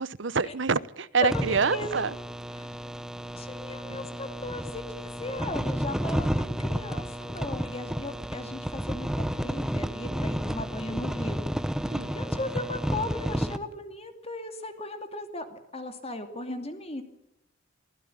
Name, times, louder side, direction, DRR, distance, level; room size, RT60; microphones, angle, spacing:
voice 1, 0.0-2.1 3.9-4.0 11.8-12.2, right 5 dB, 65° right, 18 dB, 0.8 m, -27 dB
sound 1, 1.3-13.6, equal, 5° right, 1.0 m, -32 dB
voice 2, 3.4-11.4 11.8-17.0, left 2 dB, 30° left, 7 dB, 2.5 m, -37 dB
24.0 x 16.5 x 8.8 m, 0.84 s
head